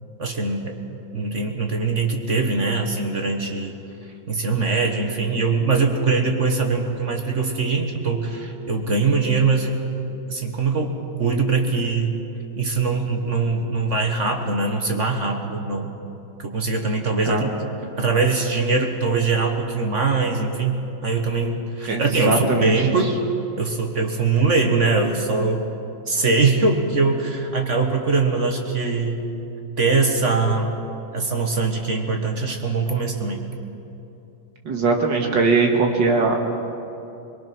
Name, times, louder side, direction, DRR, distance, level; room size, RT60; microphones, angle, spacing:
voice 1, 0.2-3.8 4.3-9.8 10.3-12.2 12.6-16.0 16.4-17.5 18.0-23.2 23.6-25.7 26.1-29.3 29.8-30.7 31.1-33.5, right 4 dB, 40° right, 3 dB, 1.5 m, -22 dB
voice 2, 21.9-22.7 34.7-36.4, right 4 dB, 65° right, 2 dB, 2.3 m, -20 dB
22.5 x 22.5 x 6.1 m, 2.9 s
omnidirectional pair, 2.2 m